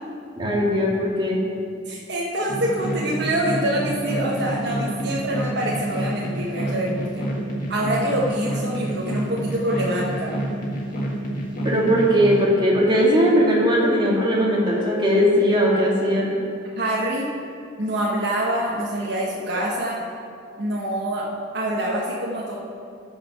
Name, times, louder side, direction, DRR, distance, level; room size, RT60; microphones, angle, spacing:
voice 1, 0.4-1.4 11.6-16.3, equal, 25° right, -3 dB, 1.9 m, -19 dB
voice 2, 1.9-7.2 7.7-10.3 16.8-17.3 17.8-20.0 20.6-21.3 21.5-22.6, right 1 dB, 60° right, -4 dB, 1.2 m, -25 dB
sound 1, 2.5-12.4, right 1 dB, 45° left, 1.7 m, -28 dB
14.0 x 5.1 x 5.8 m, 2.4 s
head